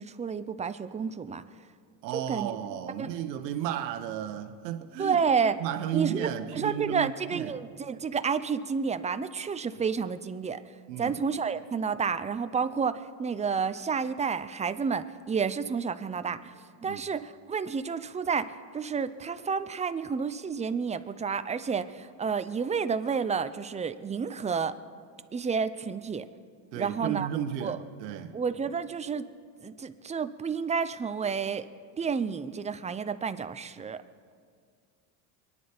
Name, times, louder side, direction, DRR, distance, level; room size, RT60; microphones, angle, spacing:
voice 1, 0.0-1.4 2.1-2.6 3.0-3.1 5.0-5.6 5.9-10.6 11.0-16.5 16.8-24.7 25.3-26.3 26.8-27.3 27.6-27.8 28.3-29.3 29.6-31.7 32.0-34.0, right 6 dB, 15° right, 0.5 m, -30 dB
voice 2, 2.0-5.2 5.6-7.6 10.9-11.2 16.8-17.0 26.7-28.4, right 10 dB, 85° right, 1.1 m, -33 dB
23.5 x 10.0 x 5.1 m
supercardioid pair, 100°, 48 cm